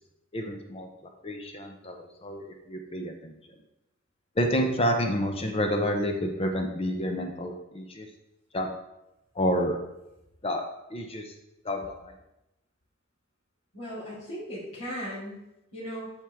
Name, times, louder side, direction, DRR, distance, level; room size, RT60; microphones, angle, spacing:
voice 1, 0.3-3.4 4.4-8.1 8.5-8.7 9.3-9.8 10.4-10.6 10.9-11.4 11.6-12.1, equal, 30° left, 4 dB, 0.7 m, -29 dB
voice 2, 13.7-16.1, equal, 85° left, -10 dB, 3.2 m, -37 dB
7.5 x 7.3 x 3.6 m, 0.91 s
head